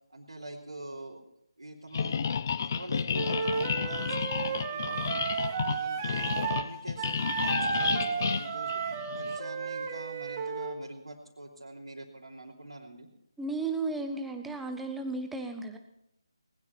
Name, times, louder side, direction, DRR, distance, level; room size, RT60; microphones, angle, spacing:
voice 1, 0.1-1.2 1.6-2.3 2.6-5.2 5.7-8.8 9.1-13.1, right 2 dB, 80° right, -6 dB, 3.2 m, -45 dB
sound 1, 1.9-9.4, left 6 dB, 35° left, 0.6 m, -31 dB
Wind instrument woodwind instrument, 3.1-6.7 7.0-10.8, right 6 dB, 25° right, 1.3 m, -33 dB
voice 2, 13.4-15.8, right 3 dB, 5° right, 4 dB, 1.2 m, -34 dB
20.0 x 12.0 x 4.3 m, 0.82 s
figure-of-eight pair, 155°, 3 cm